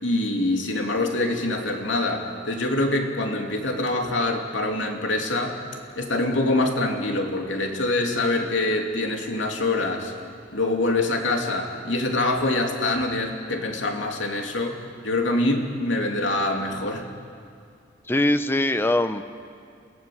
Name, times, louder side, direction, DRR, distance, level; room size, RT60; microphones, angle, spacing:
voice 1, 0.0-5.6 6.0-10.1 10.5-14.8 15.0-17.1, left 2 dB, 75° left, 2 dB, 3.1 m, -25 dB
voice 2, 18.1-19.2, left 1 dB, 10° left, 10 dB, 0.8 m, -22 dB
28.5 x 18.0 x 7.9 m, 2.3 s
head